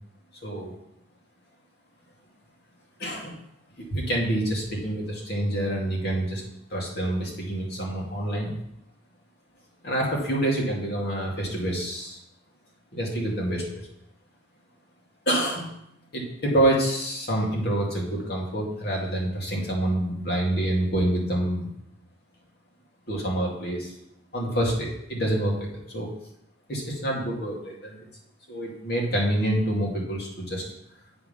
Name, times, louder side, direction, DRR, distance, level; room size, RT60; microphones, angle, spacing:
voice 1, 0.4-0.7 3.0-3.4 3.8-6.4 6.7-8.5 9.8-12.2 12.9-13.9 15.3-15.7 16.1-21.7 23.1-23.9 24.3-26.1 26.7-28.0 28.5-30.6, right 1 dB, 60° left, -2 dB, 2.4 m, -27 dB
7.8 x 5.5 x 5.7 m, 0.78 s
head